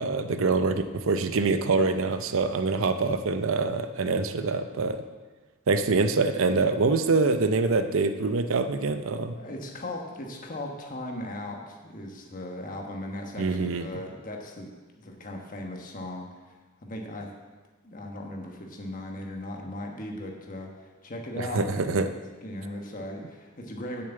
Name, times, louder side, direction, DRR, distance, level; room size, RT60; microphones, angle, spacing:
voice 1, 0.0-5.0 5.7-9.3 13.4-13.9 21.4-22.1, right 3 dB, 75° right, 9 dB, 0.6 m, -25 dB
voice 2, 9.4-17.3 17.8-21.8 22.4-24.0, left 1 dB, 40° left, 1 dB, 1.3 m, -38 dB
7.2 x 6.6 x 7.9 m, 1.3 s
head